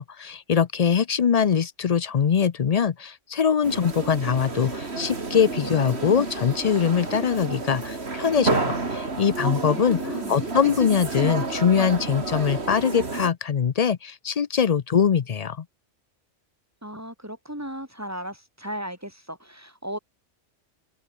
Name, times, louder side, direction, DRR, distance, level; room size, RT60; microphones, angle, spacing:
voice 1, 0.0-15.6, left 7 dB, 45° left, 0.5 m, -23 dB
sound 1, 3.6-13.3, right 3 dB, 60° right, 3.0 m, -30 dB
voice 2, 9.7-10.4 16.8-20.0, equal, 10° right, 7.4 m, -36 dB
omnidirectional pair, 1.3 m